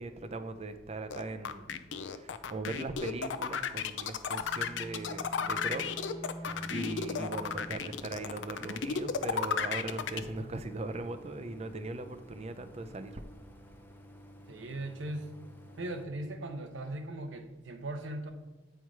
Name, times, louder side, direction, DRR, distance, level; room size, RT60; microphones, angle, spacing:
voice 1, 0.0-1.7 2.1-5.9 6.2-13.2, right 2 dB, 35° right, 8 dB, 0.5 m, -39 dB
sound 1, 1.1-10.2, left 6 dB, 70° left, 0.5 m, -33 dB
Bowed string instrument, 4.2-8.0, equal, 70° right, 1.5 m, -46 dB
Idling, 6.5-16.0, equal, 10° left, 0.6 m, -53 dB
voice 2, 14.5-15.3 15.8-18.3, right 1 dB, 85° right, 6 dB, 0.9 m, -39 dB
8.8 x 4.6 x 4.7 m, 1.3 s
head